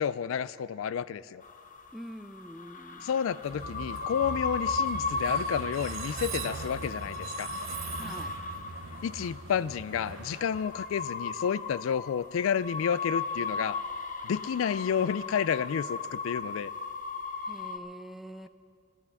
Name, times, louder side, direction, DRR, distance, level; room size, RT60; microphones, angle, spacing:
voice 1, 0.0-1.4 3.0-7.5 9.0-13.8 14.2-16.7, left 7 dB, 70° left, 18 dB, 0.3 m, -30 dB
sound 1, 1.4-17.8, left 4 dB, 40° left, 0.6 m, -36 dB
voice 2, 1.9-3.1 8.0-8.3 17.5-18.5, equal, ahead, 10 dB, 0.4 m, -44 dB
Train, 3.4-11.4, right 4 dB, 70° right, 0.7 m, -41 dB
13.5 x 12.0 x 7.0 m, 2.2 s
head